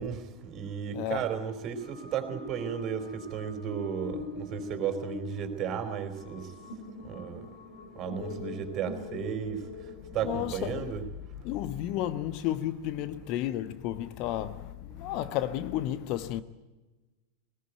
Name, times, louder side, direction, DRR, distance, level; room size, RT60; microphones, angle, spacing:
voice 1, 0.0-6.5 7.0-7.4 8.0-9.6 10.1-11.0, right 8 dB, 35° right, 3.8 m, -34 dB
voice 2, 0.9-1.3 10.0-11.0 11.3-16.4, left 12 dB, 40° left, 1.0 m, -33 dB
sound 1, 1.6-11.0, left 3 dB, 60° left, 4.6 m, -43 dB
21.0 x 20.5 x 9.1 m
figure-of-eight pair, 90°, 0 cm